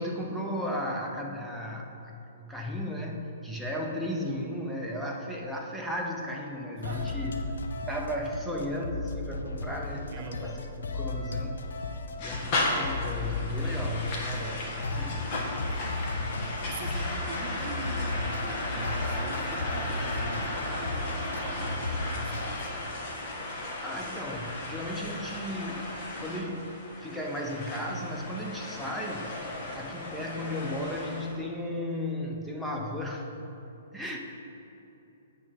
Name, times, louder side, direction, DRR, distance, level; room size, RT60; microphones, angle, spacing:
voice 1, 0.0-7.3 7.9-10.6 10.9-11.6 12.2-15.2 23.8-25.9 26.2-26.6 27.0-33.3 33.9-34.2, left 1 dB, ahead, -2 dB, 0.8 m, -35 dB
sound 1, 6.8-22.6, left 3 dB, 75° left, 0.7 m, -35 dB
voice 2, 6.8-7.1 10.1-10.4 16.7-22.7, right 5 dB, 50° right, 3 dB, 0.8 m, -42 dB
sound 2, 12.2-31.3, left 2 dB, 40° left, 1.6 m, -35 dB
8.9 x 3.7 x 5.9 m, 2.9 s
hypercardioid pair, 130°, 0 cm